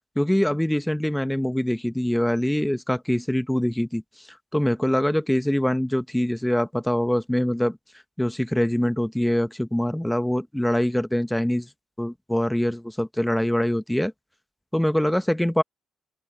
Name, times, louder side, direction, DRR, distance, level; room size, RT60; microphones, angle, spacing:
voice 1, 0.2-4.0 4.5-7.8 8.2-11.7 12.0-14.1 14.7-15.6, left 1 dB, 5° left, 0.8 m, -24 dB
open air
cardioid pair, 90°, 0 cm